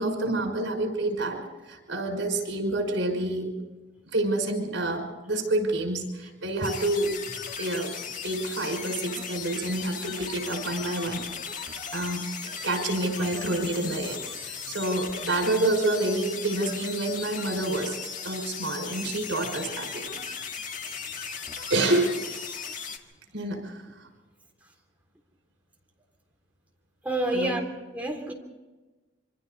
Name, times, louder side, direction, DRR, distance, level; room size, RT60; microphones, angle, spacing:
voice 1, 0.0-1.4 1.7-3.6 4.1-7.2 7.6-7.9 8.2-11.2 11.9-18.0 18.2-20.2 21.7-22.2 23.3-23.8 27.3-27.6, right 2 dB, 85° right, 3 dB, 5.7 m, -28 dB
sound 1, 6.6-23.0, left 6 dB, 45° left, 1.8 m, -37 dB
voice 2, 27.0-27.6 27.9-28.3, right 1 dB, 10° right, 0 dB, 3.5 m, -27 dB
27.0 x 24.5 x 4.1 m, 1.2 s
head